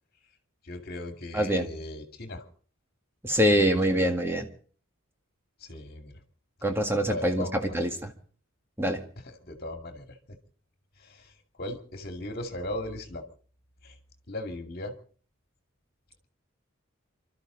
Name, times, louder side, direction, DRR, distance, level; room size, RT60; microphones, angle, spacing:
voice 1, 0.6-2.5 3.5-3.8 5.6-6.2 7.1-7.8 9.2-10.4 11.0-13.3 13.8-14.0 14.3-14.9, left 1 dB, 50° left, 5 dB, 2.4 m, -38 dB
voice 2, 1.3-1.7 3.2-4.4 6.6-7.5 7.7-7.9 8.8-9.0, equal, 10° right, 4 dB, 1.9 m, -24 dB
28.0 x 12.5 x 4.0 m, 0.43 s
head